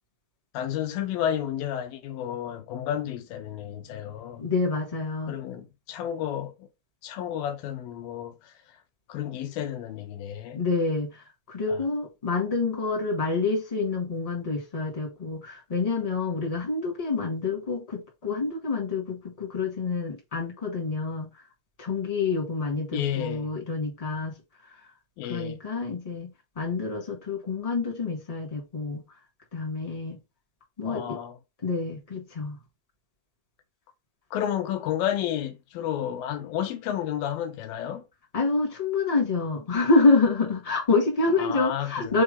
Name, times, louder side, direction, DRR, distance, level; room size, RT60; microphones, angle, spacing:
voice 1, 0.5-4.5 5.3-6.7 7.0-8.5 9.1-10.6 11.7-11.8 22.9-23.5 25.2-25.6 30.9-31.4 34.3-38.0 41.4-42.2, left 10 dB, 75° left, 2.6 m, -31 dB
voice 2, 4.4-5.3 10.5-11.2 11.5-21.3 21.8-24.3 25.3-29.0 29.5-30.2 30.8-31.2 31.6-32.6 38.3-42.2, left 3 dB, 15° left, 1.2 m, -27 dB
6.5 x 3.0 x 5.5 m
omnidirectional pair, 4.4 m